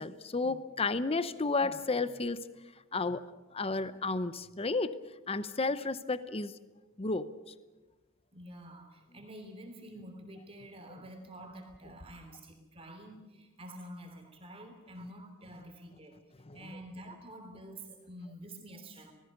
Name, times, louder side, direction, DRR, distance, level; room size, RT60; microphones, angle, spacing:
voice 1, 0.0-2.4 2.9-3.2 3.5-4.9 5.3-6.5 7.0-7.3 16.5-16.6, left 3 dB, 30° left, 13 dB, 0.8 m, -32 dB
voice 2, 8.3-16.2 16.5-19.1, right 1 dB, 25° right, 4 dB, 3.3 m, -48 dB
27.0 x 19.5 x 6.6 m, 1.2 s
head